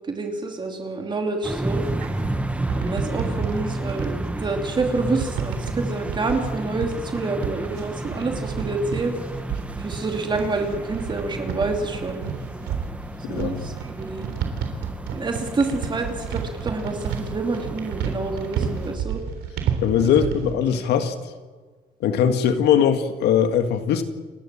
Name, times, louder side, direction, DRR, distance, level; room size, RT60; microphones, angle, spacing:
voice 1, 0.1-1.9 2.7-9.2 9.8-12.2 13.3-14.3 15.1-19.2 20.2-20.3 20.8-20.9, right 3 dB, 25° right, 3 dB, 2.7 m, -28 dB
sound 1, 1.4-19.0, right 1 dB, 5° right, 1.3 m, -32 dB
sound 2, 1.4-20.5, right 7 dB, 80° right, 3.7 m, -31 dB
voice 2, 13.2-13.8 19.8-21.1 22.0-24.0, left 8 dB, 75° left, 8 dB, 2.1 m, -20 dB
29.5 x 13.0 x 7.6 m, 1.4 s
cardioid pair, 110°, 17 cm